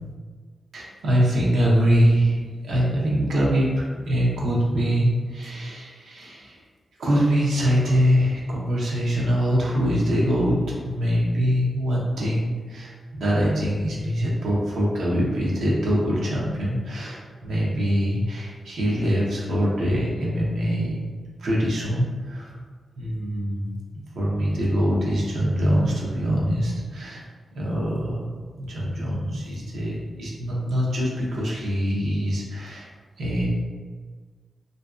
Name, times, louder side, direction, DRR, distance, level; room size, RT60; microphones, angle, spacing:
voice 1, 0.7-2.4 2.6-6.6 7.0-21.0 21.4-22.5 23.0-23.7 24.1-27.2 27.5-28.3 28.6-32.9 33.2-33.5, equal, 90° right, -5 dB, 0.6 m, -23 dB
2.5 x 2.2 x 2.4 m, 1.5 s
cardioid pair, 75°, 0 cm